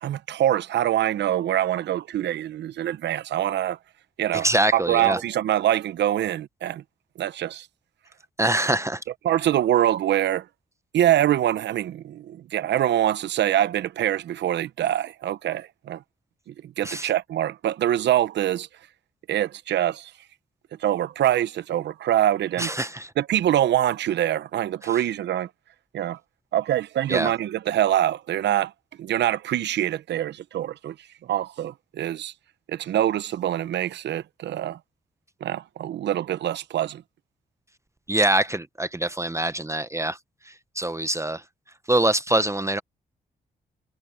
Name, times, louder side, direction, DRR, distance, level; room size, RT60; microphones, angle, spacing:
voice 1, 0.0-3.8 4.2-6.8 7.2-7.7 9.2-10.5 10.9-16.0 16.5-18.7 19.3-20.1 20.8-22.7 23.2-25.5 25.9-26.2 26.5-28.7 29.0-30.9 31.3-32.3 32.7-34.8 35.4-37.0, right 12 dB, 75° right, 0.9 m, -24 dB
voice 2, 4.3-5.2 8.4-9.0 16.8-17.1 22.6-23.1 27.1-27.3 38.1-40.2 40.8-41.4 41.9-42.8, right 1 dB, 15° right, 0.9 m, -24 dB
supercardioid pair, 55°, 18 cm